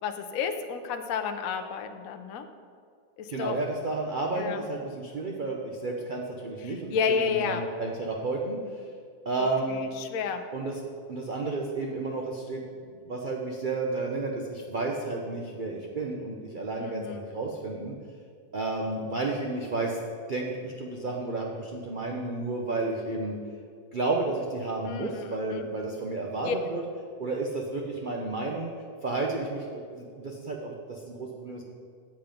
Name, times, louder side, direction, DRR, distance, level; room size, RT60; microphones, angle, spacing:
voice 1, 0.0-2.5 3.2-3.6 4.4-4.6 6.6-7.6 9.4-10.4 16.8-17.3 24.8-25.7 26.4-26.6, left 6 dB, 65° left, 6 dB, 0.9 m, -31 dB
voice 2, 3.3-8.9 9.3-9.9 10.5-10.7 11.1-12.6 13.0-17.9 18.5-20.0 20.3-23.4 23.9-26.8 27.2-28.7 29.0-31.6, right 3 dB, 70° right, 0 dB, 0.4 m, -32 dB
7.9 x 7.2 x 5.1 m, 2.2 s
omnidirectional pair, 1.9 m